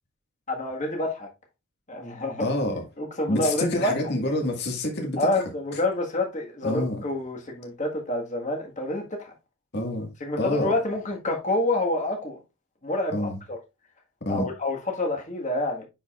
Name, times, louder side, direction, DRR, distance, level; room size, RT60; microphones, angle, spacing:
voice 1, 0.5-1.3 1.9-2.5 3.0-3.9 5.2-9.3 10.2-12.4 12.8-13.6 14.3-15.9, left 2 dB, 35° left, 1.7 m, -28 dB
voice 2, 2.4-2.8 3.3-5.3 6.6-7.0 9.7-10.1 10.4-10.7 13.1-13.4 14.3-14.5, left 1 dB, 50° left, 1.9 m, -27 dB
9.7 x 4.9 x 2.5 m
head